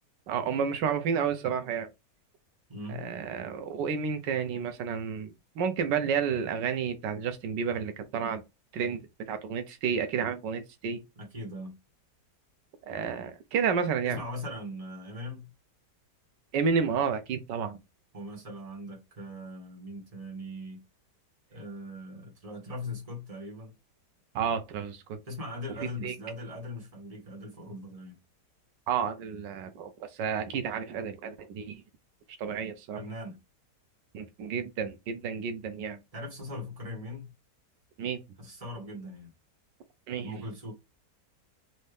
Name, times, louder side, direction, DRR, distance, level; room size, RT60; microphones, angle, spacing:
voice 1, 0.3-1.9 2.9-5.3 5.6-8.4 8.7-9.0 9.3-11.0 12.9-14.2 16.5-17.8 24.3-25.2 26.0-26.2 28.9-31.8 32.4-33.0 34.1-36.0 38.0-38.2 40.1-40.3, right 6 dB, 90° right, 1.4 m, -31 dB
voice 2, 2.7-3.1 11.1-11.7 14.0-15.5 18.1-20.8 21.5-23.7 25.3-28.2 32.9-33.4 36.1-37.3 38.4-39.3 40.2-40.7, left 1 dB, 20° right, 1.5 m, -40 dB
4.3 x 2.7 x 3.3 m
omnidirectional pair, 1.8 m